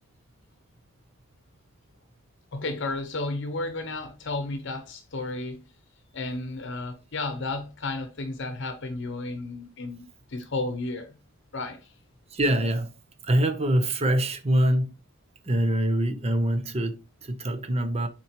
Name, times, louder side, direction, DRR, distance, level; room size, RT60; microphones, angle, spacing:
voice 1, 2.5-5.6 6.1-11.1 11.5-11.9, left 2 dB, 55° left, 0.8 m, -33 dB
voice 2, 12.3-12.9 13.2-14.9 15.5-18.1, right 1 dB, 30° right, 0.8 m, -24 dB
7.5 x 4.4 x 2.9 m
head